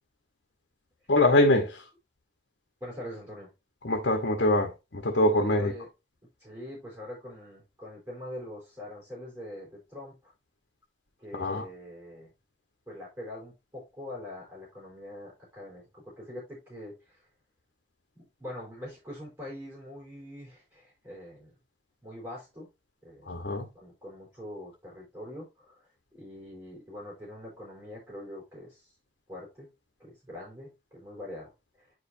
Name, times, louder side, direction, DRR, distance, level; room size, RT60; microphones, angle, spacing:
voice 1, 1.1-1.8 3.8-5.7 11.3-11.6 23.3-23.6, left 1 dB, 80° left, 1.1 m, -24 dB
voice 2, 2.8-3.5 5.2-5.9 6.4-10.3 11.2-12.3 12.9-17.2 18.2-21.5 22.0-22.7 23.0-23.3 23.7-28.9 29.3-29.7 30.0-31.5 31.8-31.9, left 1 dB, 20° right, 4.5 m, -43 dB
9.4 x 5.1 x 2.7 m
head